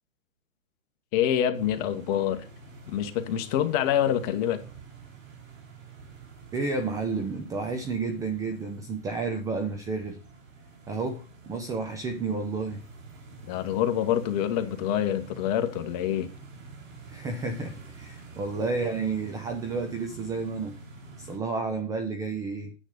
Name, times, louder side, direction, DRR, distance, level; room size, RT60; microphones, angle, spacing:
voice 1, 1.1-2.4 2.9-4.6 13.5-16.3, left 10 dB, 30° left, 1.5 m, -26 dB
sound 1, 1.5-21.4, right 4 dB, 75° right, 4.4 m, -48 dB
voice 2, 6.5-10.2 10.9-12.8 17.1-20.8 21.2-22.7, right 4 dB, 10° right, 0.6 m, -31 dB
9.8 x 8.1 x 5.2 m
hypercardioid pair, 135°, 40 cm